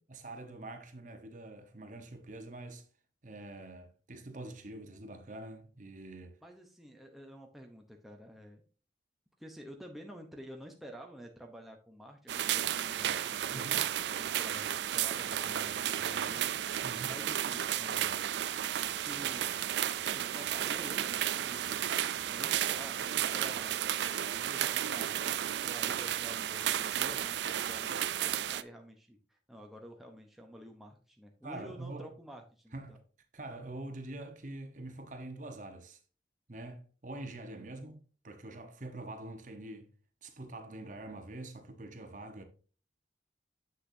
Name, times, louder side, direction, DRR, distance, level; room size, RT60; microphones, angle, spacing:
voice 1, 0.1-2.8 3.2-6.4 13.5-13.8 16.8-17.1 31.4-32.1 32.7-32.9 33.3-36.0 36.5-39.9 40.2-42.4, right 2 dB, 45° right, 1.0 m, -45 dB
voice 2, 6.4-8.6 9.4-16.4 17.0-18.2 19.0-19.6 20.1-23.8 24.3-33.0 37.6-37.8, equal, ahead, 0.8 m, -50 dB
sound 1, 12.3-28.6, right 11 dB, 70° right, 0.4 m, -33 dB
7.9 x 6.4 x 2.7 m
head